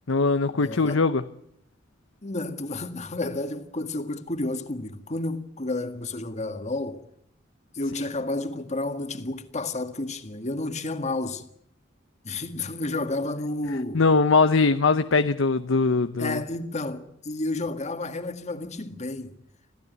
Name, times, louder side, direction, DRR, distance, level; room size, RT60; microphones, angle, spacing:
voice 1, 0.1-1.2 13.9-16.4, left 4 dB, 80° left, 0.8 m, -21 dB
voice 2, 0.6-1.0 2.2-7.0 7.7-11.4 12.2-14.0 16.2-19.3, left 2 dB, 35° left, 1.8 m, -31 dB
26.0 x 15.5 x 9.3 m
head